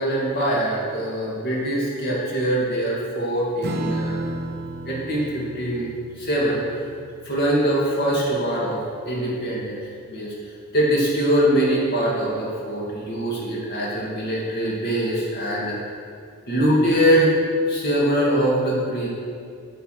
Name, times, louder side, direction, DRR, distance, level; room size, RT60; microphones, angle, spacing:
voice 1, 0.0-4.3 4.8-5.9 6.2-6.6 7.2-9.8 10.1-10.3 10.7-15.7 16.5-17.3 17.7-19.1, right 1 dB, 45° left, -5 dB, 2.4 m, -23 dB
Strum, 3.6-10.5, right 1 dB, 45° right, 0.7 m, -34 dB
7.8 x 6.0 x 6.5 m, 2.3 s
head